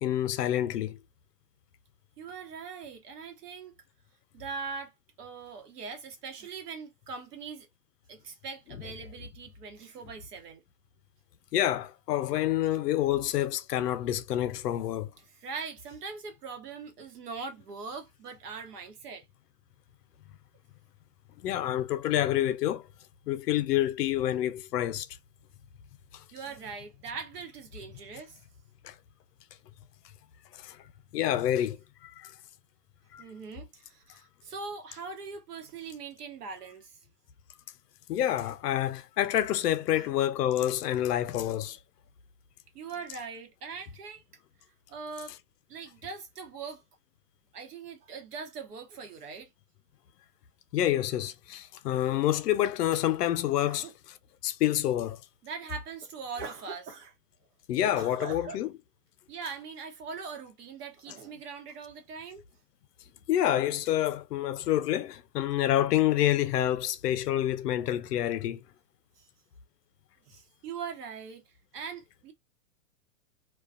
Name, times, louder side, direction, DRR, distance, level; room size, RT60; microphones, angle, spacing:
voice 1, 0.0-1.0 11.5-15.1 21.4-22.8 23.3-25.1 28.8-28.9 30.6-30.8 31.1-31.8 32.2-32.3 33.1-33.2 38.1-41.8 50.7-53.9 54.4-55.2 57.7-58.7 63.3-68.6, left 12 dB, 80° left, 0.6 m, -27 dB
voice 2, 2.2-3.8 4.3-7.7 8.1-10.6 15.2-19.2 24.3-24.4 26.3-28.3 33.2-37.0 39.9-40.2 42.7-44.2 44.9-45.4 45.7-46.8 47.5-49.5 53.6-53.9 55.4-57.1 57.9-58.6 59.3-62.4 69.2-69.3 70.3-71.4 71.7-72.3, right 5 dB, 80° right, 1.1 m, -41 dB
2.3 x 2.3 x 2.4 m
hypercardioid pair, 175°, 46 cm